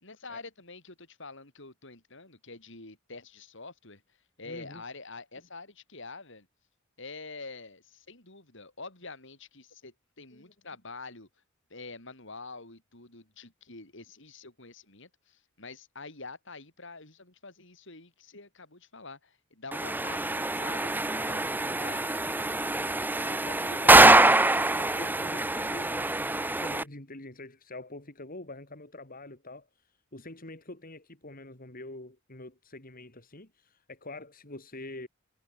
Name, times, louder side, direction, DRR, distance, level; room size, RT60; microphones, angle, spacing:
voice 1, 0.0-4.0 4.4-6.5 7.0-11.3 11.7-22.2, left 3 dB, 65° left, 6.9 m, -46 dB
voice 2, 4.4-4.8 10.3-10.5 23.3-35.1, left 2 dB, 45° left, 4.3 m, -45 dB
sound 1, 19.7-26.8, right 2 dB, 10° right, 1.0 m, -23 dB
head